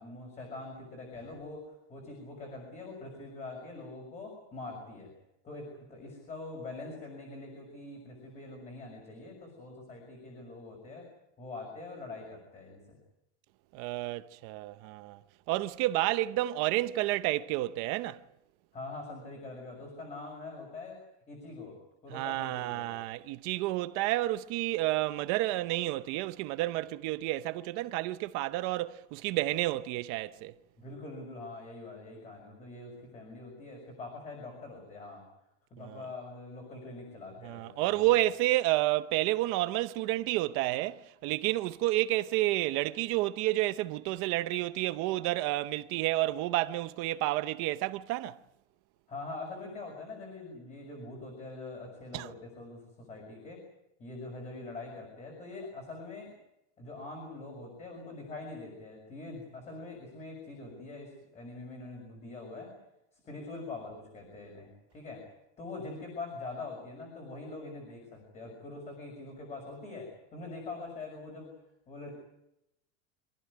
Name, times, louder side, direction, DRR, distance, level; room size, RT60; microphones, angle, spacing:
voice 1, 0.0-5.1 5.4-11.1 11.4-13.0 18.7-21.0 21.3-21.7 22.0-22.9 30.8-35.2 35.7-38.1 49.1-53.6 54.0-56.3 56.8-62.7 63.1-65.2 65.6-71.5 71.9-72.1, left 3 dB, 20° left, 6.1 m, -44 dB
voice 2, 13.7-15.2 15.5-18.2 22.1-30.5 35.8-36.1 37.4-48.4 52.1-52.3, right 16 dB, 40° right, 0.8 m, -30 dB
27.0 x 15.0 x 9.7 m
supercardioid pair, 175°, 34 cm